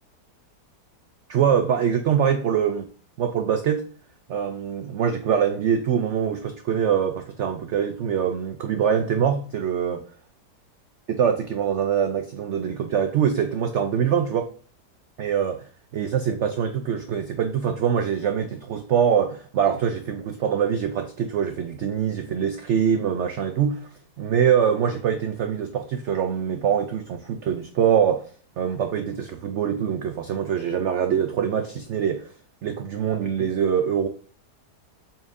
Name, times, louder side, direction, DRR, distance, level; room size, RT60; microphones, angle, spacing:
voice 1, 1.3-2.9 3.2-3.9 4.3-10.0 11.1-14.5 15.2-15.6 15.9-23.9 24.2-28.3 28.6-32.3 32.6-34.1, right 8 dB, 75° right, 6 dB, 0.6 m, -24 dB
7.1 x 5.5 x 2.6 m, 0.43 s
omnidirectional pair, 1.8 m